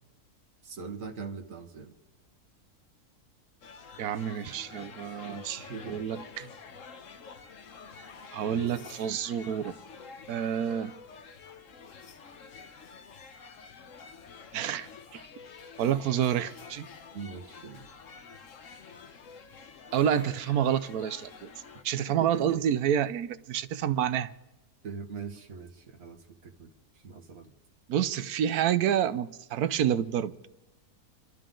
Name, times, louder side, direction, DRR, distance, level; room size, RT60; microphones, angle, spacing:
voice 1, 0.6-1.9 5.2-6.0 6.4-6.5 8.4-8.8 17.1-17.9 21.9-22.7 24.8-26.7 27.0-27.5, right 5 dB, 65° right, 1.7 m, -41 dB
sound 1, 3.6-21.8, left 5 dB, 60° left, 1.3 m, -48 dB
voice 2, 4.0-6.5 8.3-9.7 10.3-10.9 14.5-15.2 15.8-16.9 19.9-21.5 21.8-24.3 27.9-30.3, right 9 dB, 80° right, 1.2 m, -28 dB
28.5 x 12.5 x 3.8 m
omnidirectional pair, 1.6 m